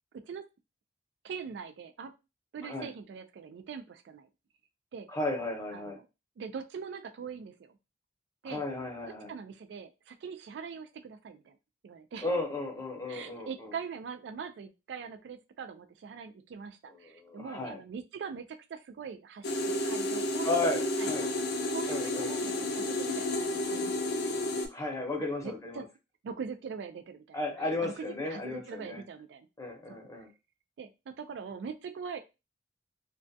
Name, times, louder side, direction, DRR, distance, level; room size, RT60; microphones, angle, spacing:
voice 1, 0.1-0.4 1.2-2.1 2.5-4.3 4.9-5.1 5.7-6.1 6.4-7.7 8.4-8.6 9.3-11.6 11.8-12.3 13.1-21.3 21.7-24.1 25.2-25.8 26.2-27.4 27.8-29.5 29.9-30.0 30.8-32.2, right 6 dB, 70° right, 8 dB, 0.3 m, -42 dB
voice 2, 5.1-6.0 8.4-9.3 12.2-13.5 17.0-17.8 20.4-21.3 21.9-22.3 24.7-25.8 27.3-29.0 29.6-30.3, left 2 dB, 20° left, 0 dB, 0.7 m, -34 dB
sound 1, 19.4-24.7, left 1 dB, 60° left, 0.5 m, -31 dB
2.3 x 2.1 x 2.6 m, 0.27 s
head